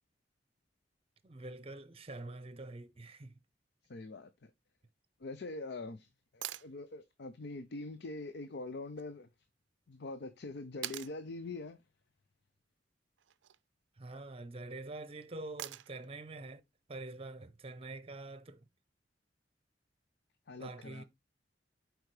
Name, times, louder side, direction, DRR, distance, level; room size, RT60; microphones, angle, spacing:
voice 1, 1.2-3.3 14.0-16.6 16.9-18.6 20.6-21.0, right 2 dB, 35° right, 0.7 m, -45 dB
voice 2, 3.9-4.5 5.2-9.3 9.9-11.8 20.5-21.0, left 2 dB, 65° left, 0.6 m, -44 dB
sound 1, 6.4-6.7 9.0-9.1 10.8-11.2 13.2-13.6 15.6-16.1 18.2-18.3, right 14 dB, 90° right, 0.4 m, -43 dB
8.0 x 4.7 x 3.2 m
head